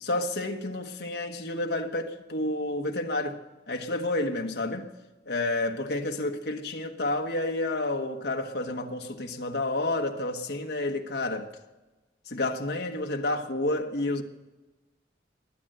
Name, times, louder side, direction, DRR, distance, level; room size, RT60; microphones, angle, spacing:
voice 1, 0.0-3.4 3.7-4.9 5.3-11.5 12.3-14.2, left 2 dB, 65° left, 1.3 m, -30 dB
21.5 x 9.0 x 6.7 m
head